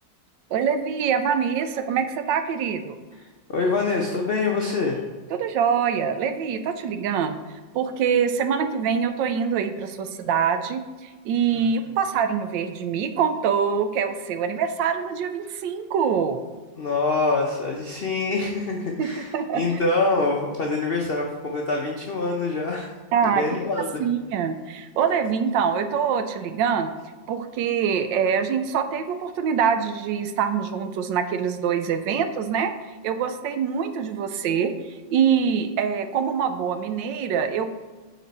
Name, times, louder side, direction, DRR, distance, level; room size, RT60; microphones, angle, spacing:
voice 1, 0.5-2.9 5.3-7.4 7.7-16.4 19.0-19.6 23.1-23.4 24.0-26.9 27.3-32.7 33.0-34.7 35.1-37.7, right 7 dB, 80° right, 9 dB, 1.3 m, -24 dB
voice 2, 3.5-5.0 11.5-11.7 16.8-22.9 23.3-24.0, left 3 dB, 80° left, 0 dB, 0.5 m, -25 dB
8.2 x 4.2 x 4.1 m, 1.4 s
omnidirectional pair, 2.0 m